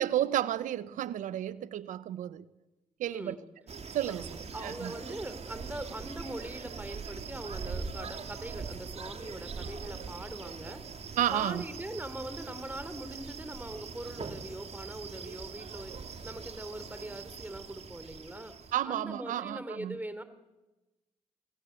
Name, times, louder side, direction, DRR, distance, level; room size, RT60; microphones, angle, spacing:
voice 1, 0.0-2.4 3.0-3.3 3.9-4.9 11.2-11.6 18.7-20.0, right 12 dB, 85° right, 0.9 m, -32 dB
voice 2, 3.1-3.4 4.0-10.8 11.3-18.5 18.9-20.2, right 1 dB, 15° right, 3.6 m, -42 dB
sound 1, 3.7-18.7, right 5 dB, 55° right, 2.4 m, -42 dB
26.5 x 16.5 x 8.3 m
supercardioid pair, 50°, 13 cm